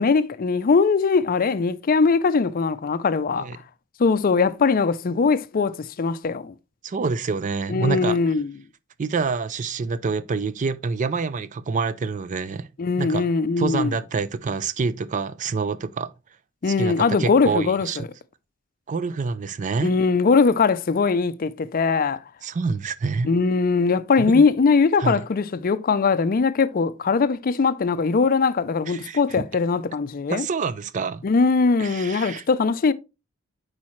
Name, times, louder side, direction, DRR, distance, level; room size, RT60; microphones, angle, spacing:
voice 1, 0.0-3.5 4.0-6.5 7.7-8.5 12.8-14.0 16.6-18.1 19.8-22.2 23.2-30.5 31.2-32.9, left 4 dB, 40° left, 0.4 m, -21 dB
voice 2, 6.8-8.2 9.0-12.7 13.0-13.3 13.6-16.1 16.7-16.9 17.2-18.0 18.9-19.9 22.4-23.3 24.2-24.4 25.0-25.2 28.9-29.2 30.3-31.3 31.8-32.4, right 4 dB, 35° right, 0.4 m, -27 dB
8.4 x 4.8 x 3.1 m
head